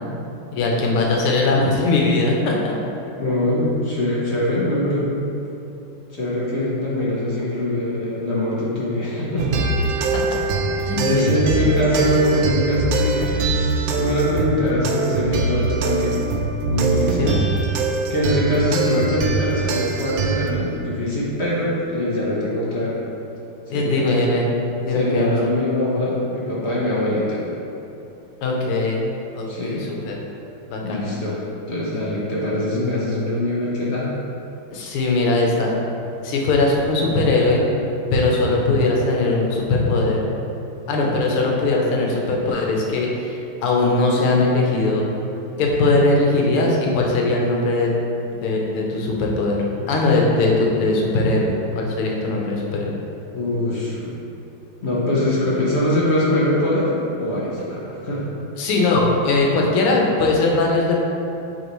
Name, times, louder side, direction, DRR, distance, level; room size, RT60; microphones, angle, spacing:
voice 1, 0.5-2.7 10.1-10.4 10.8-11.7 17.2-17.4 23.7-24.4 24.8-25.4 28.4-29.0 29.3-30.2 30.7-31.1 34.7-35.7 36.2-37.6 38.1-40.2 40.9-45.1 45.6-47.9 48.4-52.9 58.6-61.0, left 2 dB, 85° left, -1 dB, 1.7 m, -20 dB
voice 2, 3.2-5.2 6.1-9.6 10.9-16.3 16.7-17.3 18.1-23.0 23.7-24.2 24.9-27.5 29.5-29.9 30.8-31.4 31.7-34.1 53.3-54.2 54.8-58.2, left 1 dB, 50° left, -6 dB, 0.7 m, -22 dB
sound 1, 9.4-20.5, right 3 dB, 75° right, 1.2 m, -23 dB
8.0 x 3.9 x 3.1 m, 2.8 s
omnidirectional pair, 2.3 m